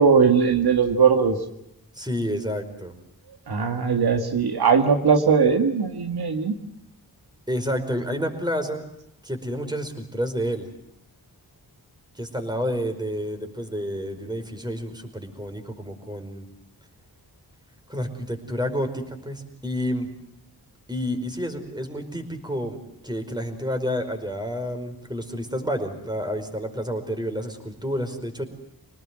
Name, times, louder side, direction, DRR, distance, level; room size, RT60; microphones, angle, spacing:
voice 1, 0.0-1.4 3.5-6.6, right 5 dB, 70° right, 5 dB, 2.0 m, -19 dB
voice 2, 1.9-2.9 7.5-8.8 9.2-10.7 12.1-16.5 17.9-20.1 20.9-22.8 23.0-28.4, equal, 10° right, 5 dB, 5.0 m, -29 dB
26.5 x 19.0 x 7.7 m, 0.82 s
cardioid pair, 65°, 39 cm